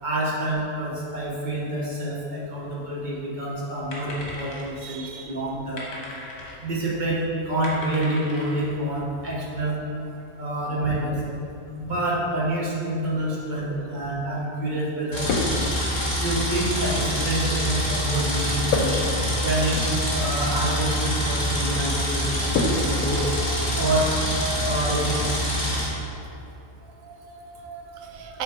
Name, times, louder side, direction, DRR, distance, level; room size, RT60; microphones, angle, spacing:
voice 1, 0.0-5.8 6.6-9.8 10.4-11.1 11.8-15.2 16.2-18.9 19.4-19.8 20.1-23.3 23.7-24.1 24.6-25.4, right 1 dB, 35° right, -6 dB, 1.3 m, -27 dB
sound 1, 2.7-3.2 3.5-5.0 5.5-6.6 7.1-7.2 7.4-8.9, left 1 dB, 50° left, 1.3 m, -38 dB
voice 2, 4.8-5.3 22.7-23.1 23.4-23.8 26.8-28.4, right 8 dB, 70° right, 3 dB, 1.0 m, -39 dB
sound 2, 13.7-14.0 15.3-16.1 18.7-20.2 20.5-20.8 22.5-23.3, left 3 dB, 80° left, 1.1 m, -28 dB
sound 3, 15.1-25.9, equal, 35° left, 1.7 m, -26 dB
6.7 x 3.8 x 4.5 m, 2.8 s
omnidirectional pair, 1.5 m